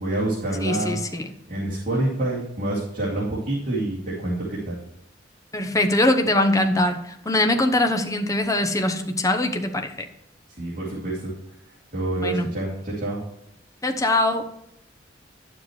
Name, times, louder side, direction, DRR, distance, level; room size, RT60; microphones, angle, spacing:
voice 1, 0.0-1.0 1.5-4.8 10.6-11.3 11.9-13.2, right 1 dB, 45° right, -7 dB, 2.9 m, -27 dB
voice 2, 0.6-1.3 5.5-9.9 12.2-12.5 13.8-14.5, left 1 dB, 20° left, 6 dB, 0.8 m, -22 dB
11.0 x 7.3 x 3.2 m, 0.79 s
head